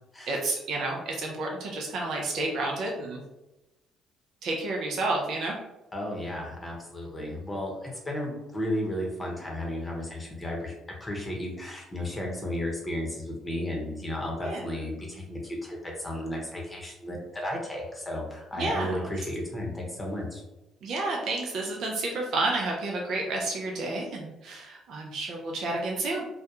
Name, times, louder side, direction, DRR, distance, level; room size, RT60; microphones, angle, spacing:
voice 1, 0.3-3.2 4.4-5.6 14.4-14.6 18.6-19.1 20.8-26.2, right 2 dB, 65° right, -1 dB, 0.4 m, -30 dB
voice 2, 5.9-10.7 11.0-20.4, left 1 dB, 20° left, -1 dB, 0.8 m, -33 dB
2.2 x 2.2 x 2.8 m, 0.98 s
hypercardioid pair, 55°, 0 cm